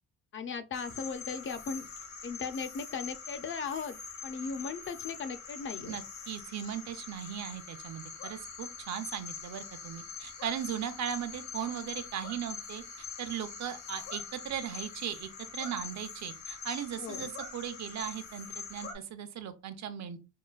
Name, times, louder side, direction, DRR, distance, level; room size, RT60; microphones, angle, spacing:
voice 1, 0.3-1.9 2.2-6.0 17.0-17.3, left 5 dB, 40° left, 0.5 m, -37 dB
sound 1, 0.7-18.9, left 5 dB, 65° left, 1.0 m, -44 dB
voice 2, 5.9-12.8 13.2-20.2, right 9 dB, 65° right, 0.6 m, -38 dB
5.4 x 2.2 x 2.3 m
cardioid pair, 90°, 30 cm